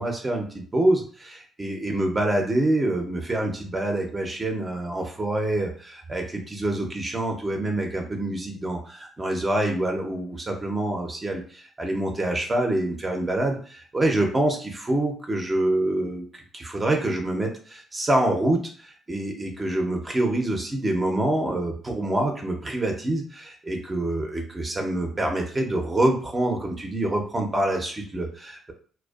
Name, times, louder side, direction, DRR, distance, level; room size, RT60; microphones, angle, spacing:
voice 1, 0.0-28.7, right 1 dB, 25° right, 2 dB, 0.5 m, -26 dB
2.5 x 2.2 x 2.3 m, 0.44 s
cardioid pair, 90°, 0 cm